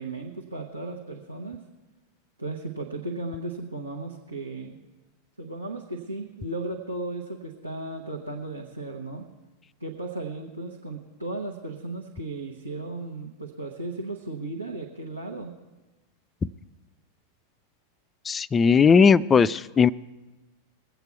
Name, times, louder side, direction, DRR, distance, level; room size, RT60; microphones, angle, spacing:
voice 1, 0.0-1.6 2.4-4.8 5.4-9.2 9.8-15.5, right 2 dB, 85° right, -1 dB, 1.1 m, -35 dB
voice 2, 18.3-19.9, left 6 dB, 20° left, 17 dB, 0.3 m, -18 dB
22.0 x 8.1 x 4.5 m, 1.2 s
figure-of-eight pair, 90°, 0 cm